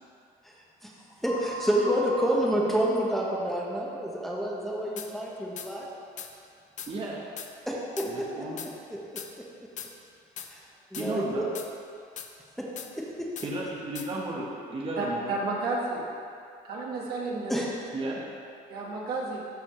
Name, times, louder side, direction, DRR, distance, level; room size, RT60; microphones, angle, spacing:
voice 1, 1.2-5.9 7.7-8.0 10.5-10.6 10.9-11.4 17.5-17.7, equal, ahead, -4 dB, 1.1 m, -28 dB
sound 1, 1.3-3.8, right 1 dB, 20° left, 1.6 m, -39 dB
sound 2, 5.0-5.1 5.6-5.7 6.2-6.3 6.8-6.9 7.4-7.5 8.0-8.1 8.6-8.7 9.2-9.3 9.8-9.9 10.4-10.5 10.9-11.1 11.5-11.7 12.2-12.3 12.8-12.9 13.4-13.5 13.9-14.1, left 8 dB, 45° left, 0.6 m, -39 dB
voice 2, 6.9-7.2 8.0-8.6 11.0-11.5 13.4-15.3 17.9-18.2, right 2 dB, 30° right, -3 dB, 1.1 m, -34 dB
voice 3, 15.0-16.1 16.6-17.5 18.7-19.4, right 3 dB, 70° right, -4 dB, 1.5 m, -31 dB
12.5 x 4.3 x 3.1 m, 2.4 s
cardioid pair, 110°, 17 cm